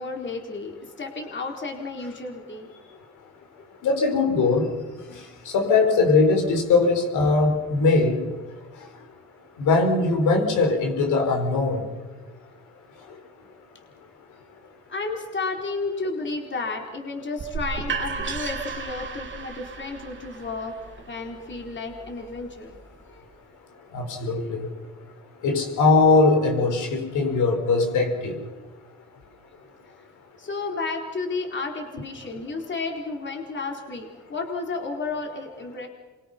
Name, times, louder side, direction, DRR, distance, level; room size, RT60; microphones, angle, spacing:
voice 1, 0.0-2.7 14.9-20.7 21.1-22.8 23.1-23.3 24.5-24.6 30.4-35.9, left 3 dB, 40° left, 1 dB, 4.2 m, -32 dB
voice 2, 3.8-4.7 5.4-8.2 9.6-11.9 23.9-24.7 25.4-28.4, left 3 dB, 80° left, 3 dB, 5.1 m, -20 dB
sound 1, 17.4-23.2, right 5 dB, 40° right, 2.6 m, -35 dB
28.0 x 24.0 x 5.9 m, 1.3 s
cardioid pair, 90°, 30 cm